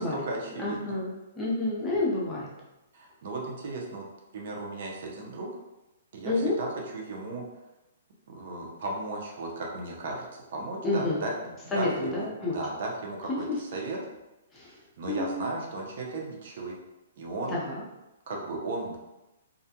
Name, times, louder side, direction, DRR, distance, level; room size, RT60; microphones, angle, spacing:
voice 1, 0.0-1.0 2.9-4.1 4.3-5.5 6.1-7.4 8.3-14.0 14.7-16.8 17.2-17.6 18.3-19.0, right 2 dB, 55° right, -1 dB, 0.6 m, -35 dB
voice 2, 0.6-2.5 6.2-6.5 10.8-11.3 11.7-12.6 13.3-13.4 14.5-14.8 15.1-15.4 17.5-17.8, left 2 dB, 10° left, -6 dB, 0.6 m, -29 dB
2.4 x 2.2 x 2.8 m, 0.99 s
hypercardioid pair, 155°, 0 cm